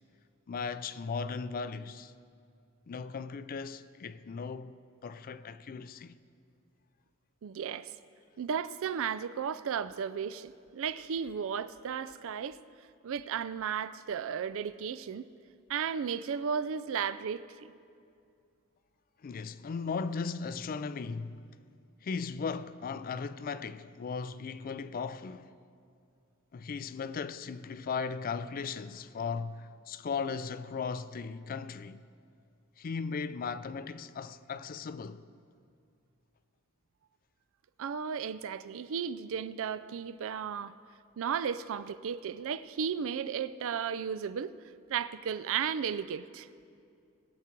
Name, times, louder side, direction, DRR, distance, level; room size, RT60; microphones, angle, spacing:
voice 1, 0.5-2.1 2.9-6.2 19.2-21.4 22.0-25.5 26.5-32.0 32.8-35.2, left 5 dB, 40° left, 0.4 m, -37 dB
voice 2, 7.4-7.9 8.4-12.6 13.0-15.3 15.7-17.7 37.8-40.7 41.2-44.5 44.9-46.5, right 7 dB, 65° right, 0.4 m, -34 dB
20.5 x 7.4 x 4.5 m
head